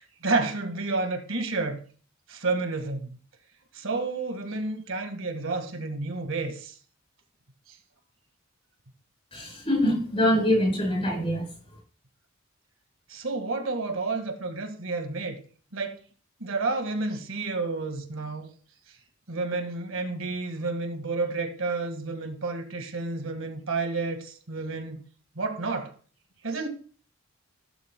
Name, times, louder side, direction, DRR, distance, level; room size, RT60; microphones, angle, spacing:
voice 1, 0.0-1.8 2.3-3.2 3.7-6.7 7.7-7.8 13.1-15.4 15.7-16.0 16.4-18.5 19.3-25.0 25.4-25.9 26.4-26.7, right 3 dB, 70° right, 1.7 m, -30 dB
voice 2, 9.3-11.4, equal, 30° left, 5.7 m, -24 dB
15.5 x 12.0 x 2.2 m
head